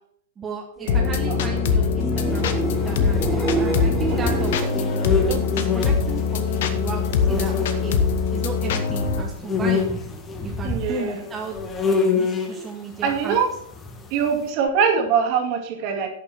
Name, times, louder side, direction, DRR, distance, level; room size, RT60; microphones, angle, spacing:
voice 1, 0.4-2.6 2.8-8.0 8.3-9.9 10.4-11.5 12.1-13.4, right 4 dB, 20° right, 0 dB, 1.3 m, -34 dB
sound 1, 0.9-9.2, left 6 dB, 50° left, 1.1 m, -23 dB
sound 2, 1.0-6.7 7.0-7.6 14.7-14.8, right 2 dB, ahead, 2.6 m, -29 dB
sound 3, 2.7-8.5 8.9-14.3, left 4 dB, 20° left, 1.6 m, -27 dB
voice 2, 10.6-11.2 13.0-13.5 14.1-16.1, right 6 dB, 40° right, 4 dB, 2.3 m, -23 dB
11.0 x 6.8 x 5.8 m, 0.67 s
figure-of-eight pair, 100°, 0 cm